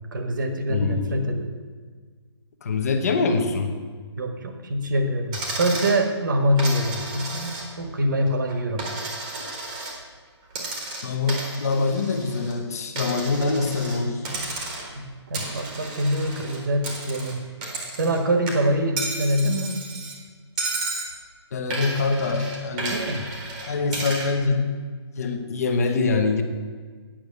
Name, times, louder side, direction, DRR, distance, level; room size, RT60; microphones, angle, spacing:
voice 1, 0.1-1.5 4.2-8.8 15.0-17.4 17.9-19.8 22.7-23.2, equal, 45° right, 5 dB, 1.3 m, -25 dB
voice 2, 0.7-1.1 2.6-3.9 11.0-14.3 21.5-23.1 23.6-24.7 25.2-26.4, left 4 dB, 35° left, 6 dB, 1.0 m, -24 dB
Coin (dropping), 5.3-6.0 6.6-7.9 8.3-10.0 10.5-12.5 13.0-14.0 14.2-15.0 15.3-18.2 18.5-20.2 20.6-21.1 21.7-24.3, right 2 dB, 15° right, 1.2 m, -33 dB
9.0 x 6.3 x 8.0 m, 1.5 s
hypercardioid pair, 175°, 15 cm